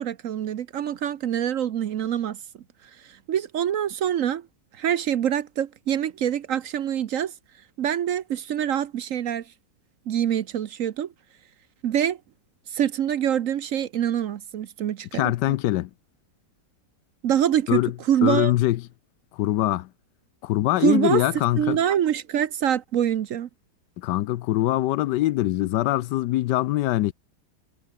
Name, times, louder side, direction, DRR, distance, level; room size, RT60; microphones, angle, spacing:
voice 1, 0.0-2.4 3.0-4.5 4.8-7.3 7.8-9.4 10.1-11.1 11.8-12.2 12.7-15.3 17.2-17.8 18.1-18.5 20.8-23.5, right 10 dB, 60° right, 1.0 m, -25 dB
voice 2, 15.1-15.9 17.7-17.9 18.2-18.8 19.3-19.9 20.4-21.8 24.0-27.1, left 15 dB, 80° left, 1.2 m, -23 dB
omnidirectional pair, 1.9 m